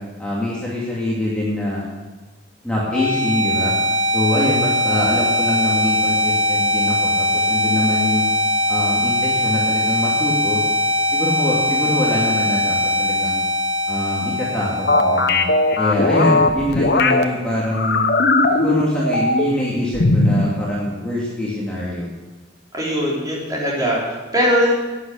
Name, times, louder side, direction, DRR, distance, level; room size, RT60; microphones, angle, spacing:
voice 1, 0.2-1.8 2.6-3.7 4.1-8.3 8.7-10.6 11.1-13.4 13.9-15.5 15.8-18.0 18.5-22.1, left 1 dB, 5° left, -7 dB, 2.5 m, -24 dB
sound 1, 2.7-16.7, left 1 dB, 40° right, 5.0 m, -21 dB
sound 2, 14.9-17.2 17.7-19.6 19.9-20.5, left 2 dB, 60° left, 1.0 m, -18 dB
voice 2, 22.7-24.7, equal, 20° right, -5 dB, 4.0 m, -20 dB
11.5 x 10.0 x 6.5 m, 1.2 s
head